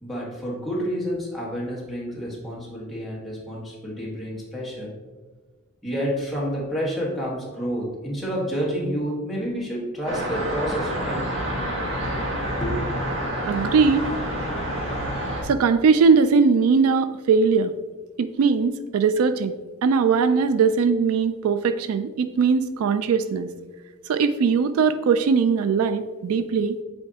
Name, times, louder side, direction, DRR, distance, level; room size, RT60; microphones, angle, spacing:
voice 1, 0.0-4.9 5.8-11.2 12.6-12.8, equal, ahead, -5 dB, 1.4 m, -29 dB
sound 1, 10.1-15.4, equal, 55° right, 1.8 m, -28 dB
voice 2, 13.4-14.0 15.4-17.7 18.2-19.5 19.8-23.5 24.1-26.8, right 5 dB, 75° right, 11 dB, 0.3 m, -20 dB
7.8 x 4.4 x 2.8 m, 1.3 s
head